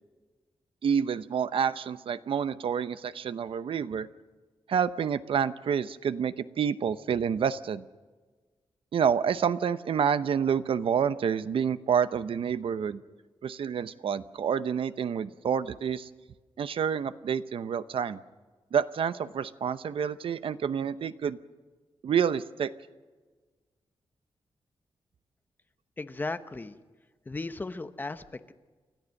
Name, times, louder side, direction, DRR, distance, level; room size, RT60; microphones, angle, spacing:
voice 1, 0.8-4.1 4.7-7.8 8.9-13.0 13.4-16.1 16.6-18.2 18.7-21.4 22.0-22.7, right 7 dB, 70° right, 13 dB, 0.7 m, -28 dB
voice 2, 26.0-26.8 27.3-28.5, left 3 dB, 20° left, 10 dB, 0.8 m, -36 dB
30.0 x 13.5 x 6.5 m, 1.3 s
wide cardioid pair, 160°, 10 cm